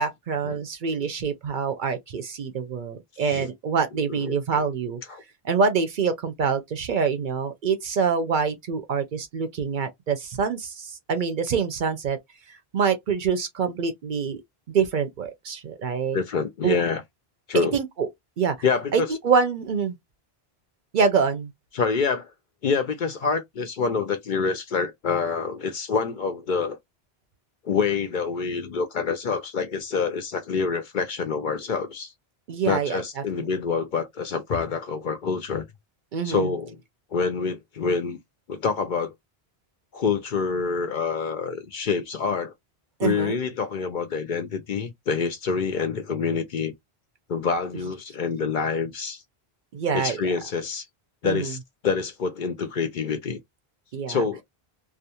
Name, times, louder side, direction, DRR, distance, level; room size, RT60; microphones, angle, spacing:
voice 1, 0.0-5.0 5.4-12.2 12.7-14.4 14.7-16.2 16.6-16.8 17.7-18.1 18.4-18.6 18.9-20.0 20.9-21.5 32.5-33.0 36.1-36.5 43.0-43.4 49.7-50.2 51.2-51.5 53.9-54.2, right 6 dB, 60° right, 0.6 m, -25 dB
voice 2, 4.1-4.6 5.1-5.2 16.1-17.0 17.5-17.8 18.6-19.1 21.7-22.3 22.6-26.8 27.6-32.1 32.7-35.6 36.2-36.8 37.1-38.2 38.5-39.1 39.9-42.5 43.0-46.7 47.3-49.2 49.9-50.8 51.2-51.6 51.8-53.4 54.1-54.4, left 5 dB, 60° left, 0.6 m, -26 dB
2.4 x 2.2 x 2.8 m
omnidirectional pair, 1.0 m